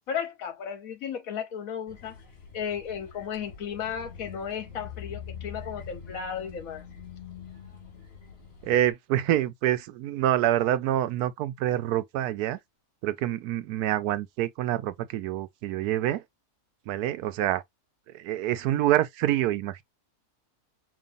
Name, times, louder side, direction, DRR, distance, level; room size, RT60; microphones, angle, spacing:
voice 1, 0.1-2.1 2.5-6.8, left 7 dB, 65° left, 1.3 m, -34 dB
sound 1, 1.9-8.9, left 7 dB, 40° left, 2.0 m, -44 dB
voice 2, 8.6-12.6 13.0-16.2 16.9-17.6 18.1-19.8, right 12 dB, 85° right, 1.1 m, -26 dB
5.2 x 3.0 x 2.6 m
omnidirectional pair, 1.6 m